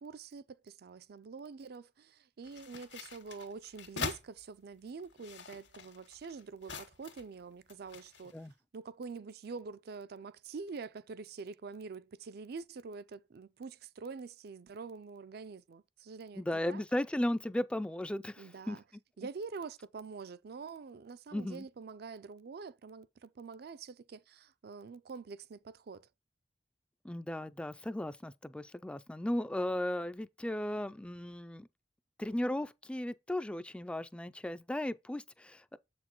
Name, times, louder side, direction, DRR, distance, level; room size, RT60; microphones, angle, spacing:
voice 1, 0.0-8.5 8.7-16.4 16.7-16.8 18.4-18.8 19.2-26.1, right 4 dB, 60° right, 0.4 m, -46 dB
sound 1, 2.4-4.2 5.0-7.3 7.7-8.4, left 5 dB, 80° left, 1.8 m, -43 dB
voice 2, 16.4-18.8 21.3-21.6 27.0-31.7 32.2-35.8, left 1 dB, 5° left, 0.3 m, -36 dB
7.8 x 6.1 x 3.0 m
head